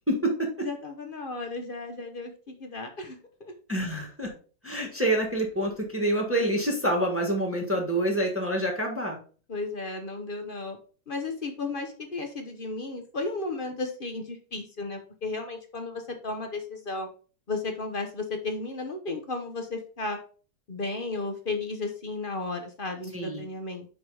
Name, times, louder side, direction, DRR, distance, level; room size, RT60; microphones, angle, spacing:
voice 1, 0.1-0.5 3.7-4.3 4.6-9.2 23.1-23.4, right 1 dB, 10° right, 0 dB, 1.3 m, -27 dB
voice 2, 0.6-3.6 9.5-10.8 11.1-17.1 17.5-20.2 20.7-23.9, left 3 dB, 40° left, 5 dB, 0.8 m, -34 dB
5.4 x 5.0 x 4.7 m, 0.40 s
omnidirectional pair, 1.9 m